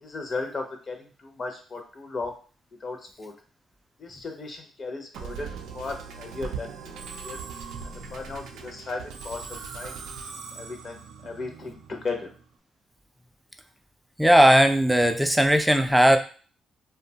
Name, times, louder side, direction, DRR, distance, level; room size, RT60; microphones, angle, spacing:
voice 1, 0.0-2.4 2.8-3.3 4.0-7.4 7.9-10.0 10.3-12.3, left 3 dB, 40° left, 3 dB, 0.6 m, -36 dB
Musical instrument, 5.1-12.5, right 5 dB, 80° right, 0.4 m, -40 dB
voice 2, 14.2-16.2, equal, 5° right, 7 dB, 0.3 m, -18 dB
2.6 x 2.2 x 2.7 m, 0.39 s
cardioid pair, 90°, 0 cm